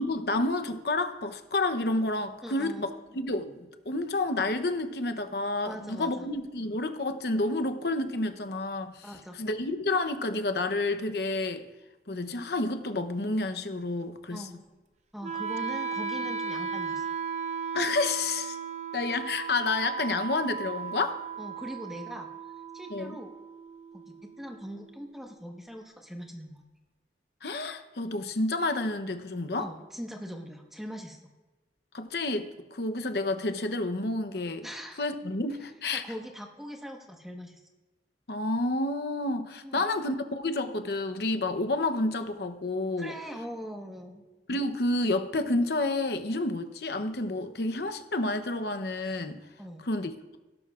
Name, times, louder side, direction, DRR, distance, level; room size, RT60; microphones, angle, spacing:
voice 1, 0.0-9.1 9.3-11.7 12.1-14.6 17.7-18.6 18.9-21.2 22.9-23.2 27.4-29.7 31.9-34.7 35.0-36.0 38.3-43.2 44.5-49.4 49.8-50.4, left 2 dB, 60° left, 9 dB, 0.8 m, -30 dB
voice 2, 2.4-2.8 5.6-6.3 9.0-9.4 14.3-14.6 15.1-17.1 21.4-22.3 22.7-23.3 23.9-26.6 29.6-31.2 34.6-35.0 35.9-37.6 39.6-39.9 43.0-44.2 49.6-49.9, equal, ahead, 1 dB, 1.3 m, -41 dB
Wind instrument woodwind instrument, 15.2-25.2, right 6 dB, 40° right, 0.7 m, -36 dB
17.0 x 11.5 x 2.5 m, 1.2 s
head